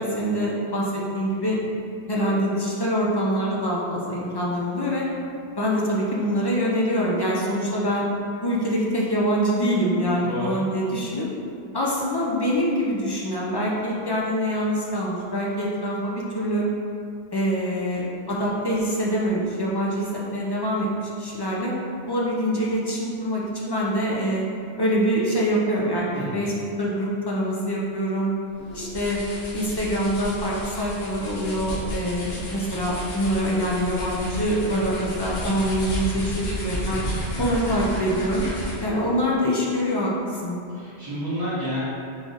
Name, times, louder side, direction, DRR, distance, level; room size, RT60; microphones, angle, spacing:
voice 1, 0.0-1.6 2.1-5.1 5.6-8.1 8.4-11.3 11.7-16.7 17.3-20.9 21.2-21.7 22.1-24.5 24.8-26.5 26.8-28.3 28.7-29.2 29.5-37.0 37.4-38.4 38.8-40.6, equal, 35° left, -4 dB, 0.4 m, -25 dB
voice 2, 10.2-10.6 26.1-26.5 37.3-37.7 40.7-41.8, equal, 30° right, -14 dB, 1.0 m, -30 dB
sound 1, 28.5-39.0, equal, 65° left, 1.1 m, -33 dB
3.7 x 3.2 x 3.9 m, 2.4 s
omnidirectional pair, 1.1 m